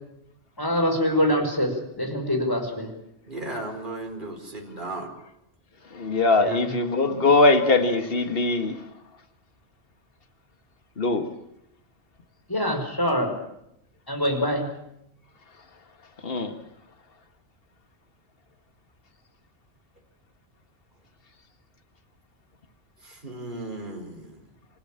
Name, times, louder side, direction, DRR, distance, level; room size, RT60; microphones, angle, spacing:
voice 1, 0.6-2.9 6.4-6.7 12.5-13.3 14.1-14.7, equal, 20° left, 4 dB, 5.4 m, -25 dB
voice 2, 3.2-5.1 23.0-24.5, right 2 dB, 45° right, 1 dB, 4.8 m, -36 dB
voice 3, 5.9-8.8 11.0-11.3 16.2-16.6, left 3 dB, 55° left, 7 dB, 2.0 m, -21 dB
27.5 x 16.5 x 8.9 m, 0.82 s
omnidirectional pair, 1.2 m